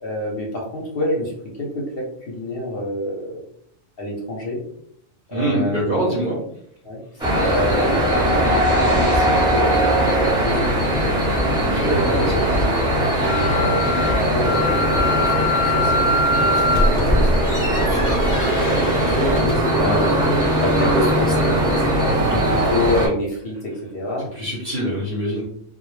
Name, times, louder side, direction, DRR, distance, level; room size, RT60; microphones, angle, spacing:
voice 1, 0.0-3.4 4.0-4.6 5.3-6.1 6.8-10.8 11.7-12.6 13.2-17.5 18.3-20.1 20.5-24.3, left 1 dB, 55° left, -2 dB, 0.7 m, -27 dB
voice 2, 5.3-6.5 11.6-12.5 19.8-20.5 22.3-22.5 24.3-25.5, right 1 dB, 50° right, -4 dB, 0.7 m, -25 dB
sound 1, 7.2-23.1, right 1 dB, 5° right, 0.7 m, -20 dB
Wind instrument woodwind instrument, 13.2-16.9, left 2 dB, 85° right, 1.0 m, -22 dB
sound 2, 16.5-19.8, equal, 25° left, 0.4 m, -23 dB
2.2 x 2.0 x 3.1 m, 0.68 s
omnidirectional pair, 1.4 m